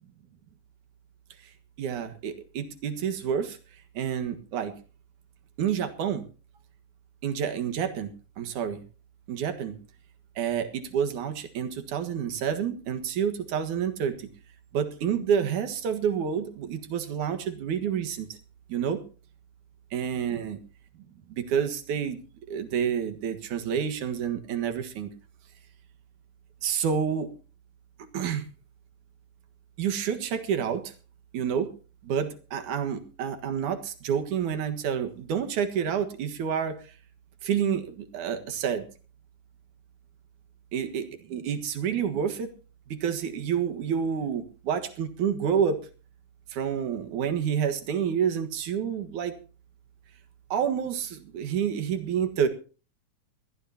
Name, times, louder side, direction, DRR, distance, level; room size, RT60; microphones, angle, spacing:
voice 1, 1.8-3.6 3.9-4.7 5.6-6.2 7.2-8.8 9.3-9.8 10.4-14.3 14.7-18.4 18.7-19.0 19.9-20.6 21.3-22.2 22.5-25.1 26.6-27.3 28.1-28.4 29.8-30.9 31.3-31.7 32.0-36.9 37.4-38.9 40.7-42.5 42.9-45.8 46.5-49.4 50.5-52.5, right 8 dB, 85° right, 9 dB, 3.1 m, -29 dB
22.0 x 15.0 x 2.9 m, 0.36 s
omnidirectional pair, 3.4 m